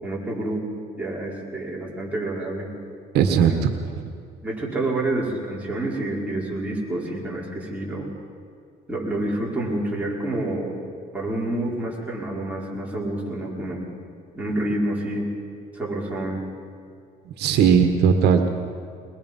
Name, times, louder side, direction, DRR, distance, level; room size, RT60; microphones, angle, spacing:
voice 1, 0.0-2.7 3.5-3.6 4.4-8.1 8.9-10.8 11.1-13.8 14.3-15.3 15.7-16.4, right 1 dB, 10° right, -5 dB, 5.1 m, -28 dB
voice 2, 3.1-3.7 17.2-18.5, right 7 dB, 75° right, 6 dB, 1.4 m, -18 dB
22.5 x 21.0 x 5.5 m, 2.3 s
cardioid pair, 110°, 17 cm